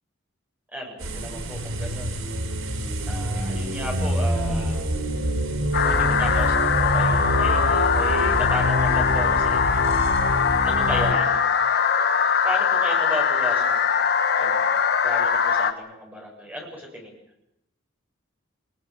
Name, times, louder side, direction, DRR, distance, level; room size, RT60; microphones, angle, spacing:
voice 1, 0.7-2.2 3.1-4.8 5.8-9.9 10.6-11.5 12.4-13.9 14.3-14.7 15.0-17.2, equal, 10° right, -1 dB, 7.9 m, -34 dB
sound 1, 1.0-11.1, equal, 90° right, 4.5 m, -26 dB
sound 2, 5.7-15.7, left 6 dB, 55° left, 1.5 m, -21 dB
27.0 x 20.5 x 7.6 m, 0.82 s
head